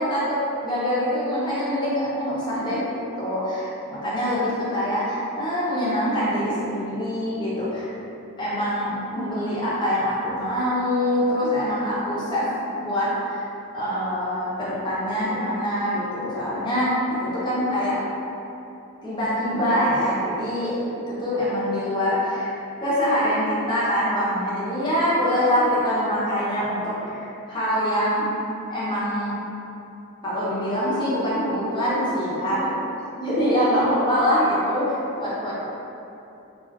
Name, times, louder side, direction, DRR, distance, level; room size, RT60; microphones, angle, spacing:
voice 1, 0.0-7.9 8.4-12.5 12.7-13.4 13.7-16.9 17.2-18.0 19.0-20.7 21.1-22.5 22.8-28.2 28.7-29.3 30.2-32.7 33.2-35.5, equal, 20° left, -9 dB, 0.7 m, -24 dB
2.4 x 2.3 x 3.4 m, 2.8 s
head